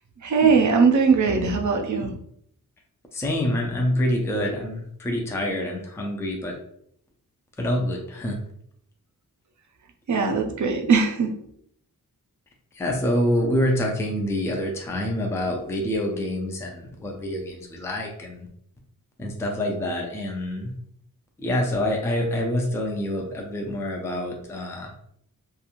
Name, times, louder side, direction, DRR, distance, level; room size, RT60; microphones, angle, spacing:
voice 1, 0.2-2.1 10.1-11.3, right 5 dB, 55° right, 3 dB, 0.5 m, -20 dB
voice 2, 3.1-6.5 7.6-8.4 12.8-18.5 19.2-20.7 21.4-24.9, left 1 dB, 10° left, 1 dB, 0.4 m, -26 dB
2.5 x 2.3 x 2.9 m, 0.68 s
wide cardioid pair, 150°, 36 cm